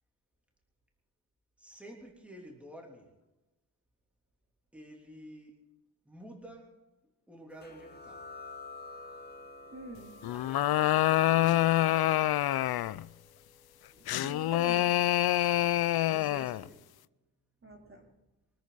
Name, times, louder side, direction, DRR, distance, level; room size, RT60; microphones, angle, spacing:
voice 1, 1.6-3.1 4.7-5.6 6.0-6.7 7.3-8.2 10.2-12.2 15.9-16.9, equal, 5° right, 0 dB, 3.2 m, -50 dB
sound 1, 7.6-14.9, left 3 dB, 25° left, 2.2 m, -51 dB
voice 2, 9.7-10.2 13.9-15.2 17.6-18.1, right 1 dB, 35° right, 1 dB, 3.2 m, -46 dB
sound 2, 10.2-13.1 14.1-16.7, left 13 dB, 70° left, 0.5 m, -26 dB
24.5 x 13.5 x 4.0 m, 1.0 s
wide cardioid pair, 155°, 39 cm